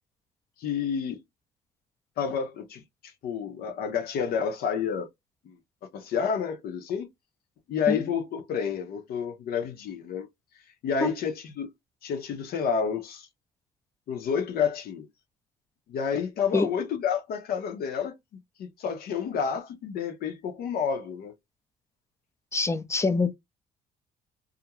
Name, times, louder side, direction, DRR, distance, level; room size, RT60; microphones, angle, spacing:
voice 1, 0.6-1.2 2.2-2.8 3.2-5.1 5.4-5.6 5.9-7.1 7.7-10.3 10.8-11.7 12.0-13.3 14.1-15.1 15.9-18.2 18.6-21.3, left 7 dB, 65° left, 0.7 m, -29 dB
voice 2, 22.5-23.3, left 3 dB, 15° left, 0.4 m, -25 dB
2.4 x 2.1 x 2.9 m
cardioid pair, 110°, 17 cm